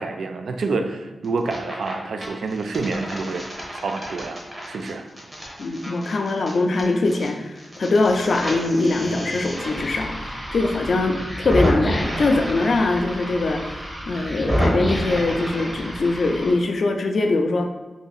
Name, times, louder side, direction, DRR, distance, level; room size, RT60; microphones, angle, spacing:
voice 1, 0.0-4.4 4.7-5.0 10.9-11.2, right 3 dB, 75° right, 6 dB, 0.3 m, -28 dB
sound 1, 1.2-1.9 2.2-7.3 7.6-16.5, equal, 20° right, 0.8 m, -29 dB
voice 2, 5.6-17.7, left 2 dB, 55° left, 4 dB, 0.3 m, -22 dB
2.8 x 2.6 x 4.0 m, 1.1 s
wide cardioid pair, 165°, 0 cm